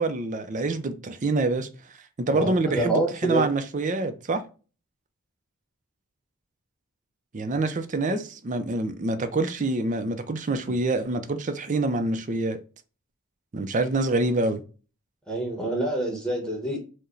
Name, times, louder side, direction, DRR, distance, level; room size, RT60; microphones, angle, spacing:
voice 1, 0.0-1.7 2.2-4.4 7.3-12.6 13.5-14.6, right 2 dB, 35° right, 0.4 m, -26 dB
voice 2, 2.3-3.5 8.1-8.2 15.3-16.8, right 1 dB, 5° left, 1.0 m, -27 dB
4.5 x 2.1 x 3.1 m
head